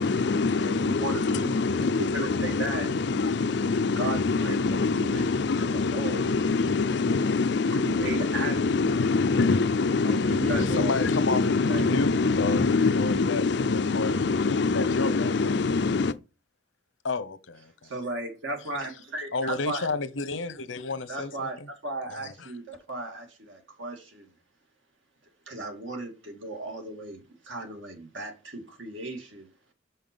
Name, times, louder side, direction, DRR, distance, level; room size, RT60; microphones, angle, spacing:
voice 1, 0.0-16.1, left 4 dB, 60° left, 0.5 m, -25 dB
voice 2, 0.6-1.9 2.1-2.9 4.0-5.3 5.6-6.2 7.7-8.7 10.0-10.9 11.7-11.9 17.8-19.9 21.1-24.3 25.5-29.5, right 2 dB, 80° right, 2.2 m, -36 dB
voice 3, 10.5-11.4 11.8-12.1 12.4-12.7 13.0-13.4 13.7-14.2 14.6-15.6 17.0-17.9 19.3-21.7 22.1-22.5, left 3 dB, 80° left, 0.9 m, -31 dB
6.0 x 5.7 x 5.2 m
head